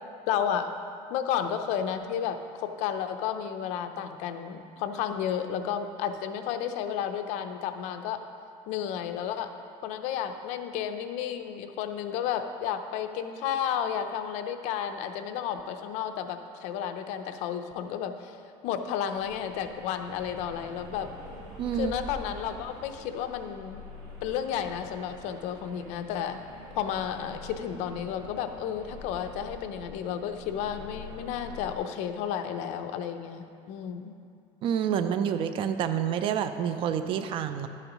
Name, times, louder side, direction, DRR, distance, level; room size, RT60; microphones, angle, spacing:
voice 1, 0.3-0.7 1.1-8.2 8.7-9.5 9.8-18.4 18.6-21.1 21.7-23.8 24.2-26.4 26.8-34.1, left 9 dB, 65° left, 7 dB, 0.6 m, -32 dB
sound 1, 19.2-31.8, left 2 dB, 80° right, 2.2 m, -45 dB
voice 2, 21.6-21.9 34.6-37.7, right 8 dB, 45° right, 10 dB, 0.5 m, -28 dB
11.5 x 8.9 x 3.0 m, 2.4 s
cardioid pair, 150°, 13 cm